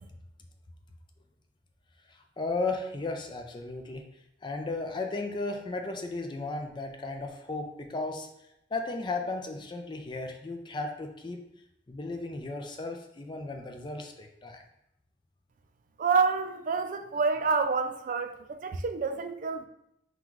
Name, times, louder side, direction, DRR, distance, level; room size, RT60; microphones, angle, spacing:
voice 1, 2.1-4.0 4.4-8.3 8.7-11.4 11.9-14.6, left 3 dB, 25° left, 0.5 m, -35 dB
voice 2, 16.0-19.7, right 5 dB, 50° right, 0.4 m, -28 dB
4.0 x 2.3 x 4.6 m
head